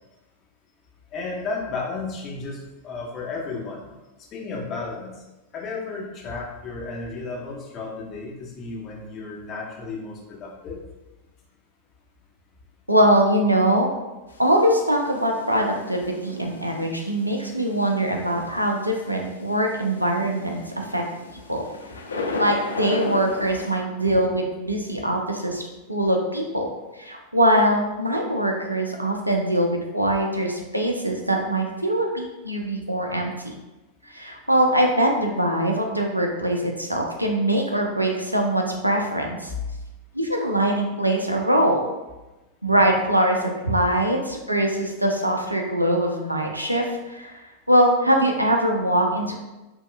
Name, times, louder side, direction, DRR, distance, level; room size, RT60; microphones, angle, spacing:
voice 1, 1.1-2.6 2.8-3.8 4.3-5.2 5.5-10.8, left 3 dB, 30° left, -2 dB, 0.8 m, -33 dB
voice 2, 12.9-13.9 14.4-21.0 21.5-21.6 22.4-25.6 25.9-26.7 27.0-33.3 34.1-39.5 40.1-41.8 42.6-47.4 47.7-49.3, right 1 dB, 85° right, 2 dB, 0.4 m, -22 dB
sound 1, 14.3-23.8, left 3 dB, 75° left, 0.3 m, -36 dB
5.2 x 2.3 x 2.2 m, 1.1 s
figure-of-eight pair, 90°, 0 cm